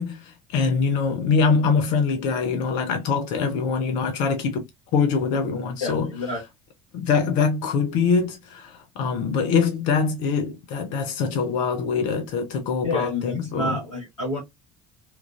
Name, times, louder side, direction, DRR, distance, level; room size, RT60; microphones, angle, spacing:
voice 1, 0.0-4.6 4.9-6.1 6.9-13.8, left 5 dB, 55° left, 0.5 m, -23 dB
voice 2, 5.8-6.4 12.8-14.4, left 2 dB, 80° left, 0.8 m, -29 dB
3.0 x 2.4 x 2.3 m
figure-of-eight pair, 60°, 16 cm